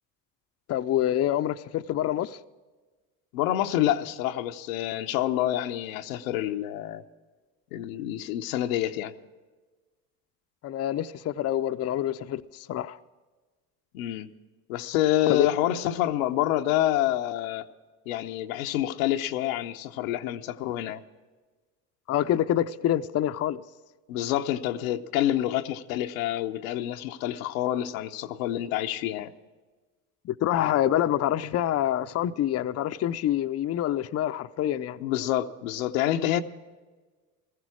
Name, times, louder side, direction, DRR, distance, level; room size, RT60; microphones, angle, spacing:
voice 1, 0.7-2.4 10.6-13.0 15.3-15.5 22.1-23.6 30.2-35.0, left 12 dB, 40° left, 0.5 m, -26 dB
voice 2, 3.3-7.0 7.7-9.1 13.9-14.3 14.7-17.7 18.1-21.0 24.1-29.3 35.0-36.4, left 13 dB, 90° left, 0.8 m, -27 dB
16.0 x 14.5 x 4.8 m
supercardioid pair, 85°, 40 cm